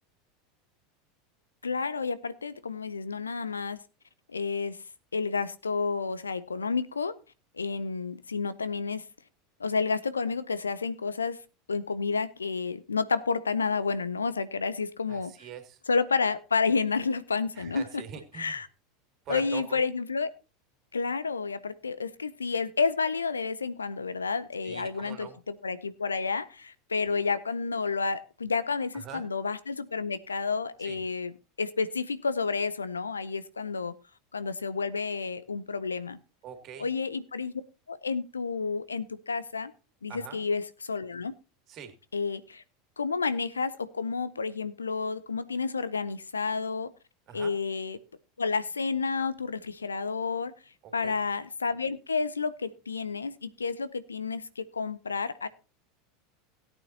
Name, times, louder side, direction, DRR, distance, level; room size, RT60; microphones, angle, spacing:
voice 1, 1.6-3.8 4.3-4.8 5.1-7.2 7.5-9.1 9.6-11.4 11.7-15.3 15.9-18.0 18.3-18.7 19.3-20.3 20.9-31.3 31.6-33.9 34.3-36.2 36.8-37.6 37.9-39.7 40.0-41.3 42.1-42.6 43.0-46.9 47.3-48.0 48.4-50.5 50.9-55.5, left 4 dB, 80° left, 15 dB, 0.7 m, -30 dB
voice 2, 15.1-15.8 17.6-18.6 19.3-19.8 24.6-25.4 28.9-29.3 30.8-31.0 36.4-36.9 40.1-40.4 41.7-41.9 47.3-47.6 50.8-51.2, right 9 dB, 40° right, 7 dB, 2.3 m, -43 dB
17.5 x 9.1 x 2.8 m, 0.30 s
figure-of-eight pair, 80°, 0 cm